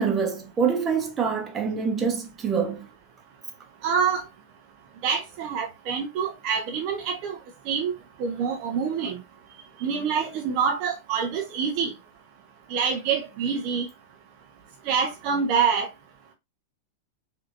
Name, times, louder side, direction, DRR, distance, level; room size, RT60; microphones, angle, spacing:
voice 1, 0.0-2.9, right 6 dB, 20° right, 1.2 m, -25 dB
voice 2, 3.8-4.2 5.0-7.4 7.7-7.9 8.2-9.2 9.8-11.9 12.7-13.9 14.8-15.9, right 6 dB, 45° right, 0.8 m, -26 dB
4.9 x 2.8 x 2.6 m
figure-of-eight pair, 90°, 0 cm